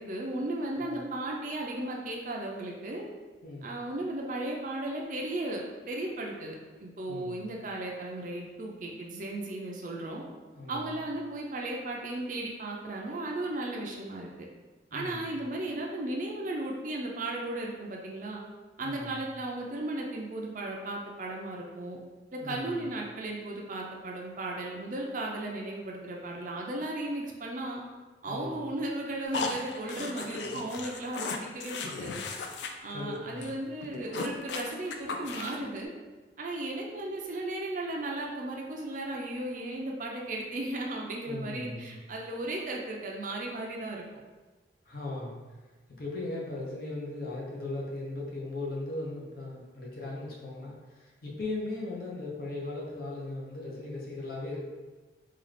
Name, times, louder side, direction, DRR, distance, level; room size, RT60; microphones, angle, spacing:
voice 1, 0.0-3.0 3.6-10.2 10.7-14.3 14.9-18.4 18.8-22.0 22.3-27.8 28.2-32.2 32.8-35.9 36.4-44.0, right 1 dB, 45° right, -1 dB, 0.5 m, -35 dB
voice 2, 3.4-3.8 7.1-7.5 10.5-10.9 14.9-15.3 18.8-19.2 22.4-22.9 28.2-28.7 32.9-33.5 41.3-42.0 44.9-45.4 46.0-54.6, left 2 dB, 55° left, -4 dB, 0.8 m, -38 dB
sound 1, 29.3-32.7 33.0-33.1 33.4-33.5 33.8-35.7, left 4 dB, 70° left, 0.3 m, -36 dB
3.8 x 2.4 x 3.3 m, 1.3 s
head